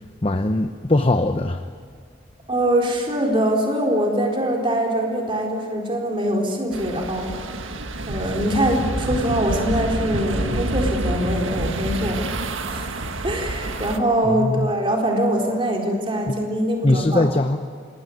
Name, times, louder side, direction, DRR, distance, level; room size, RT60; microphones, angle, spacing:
voice 1, 0.2-1.6 14.2-14.7 16.3-16.4 16.8-17.6, left 2 dB, 25° left, 7 dB, 0.8 m, -21 dB
voice 2, 2.5-7.6 8.1-12.2 12.7-12.9 13.2-17.2, right 1 dB, 25° right, 0 dB, 4.1 m, -23 dB
sound 1, 6.7-14.0, right 1 dB, 75° right, 1.7 m, -27 dB
27.0 x 21.0 x 9.4 m, 2.2 s
head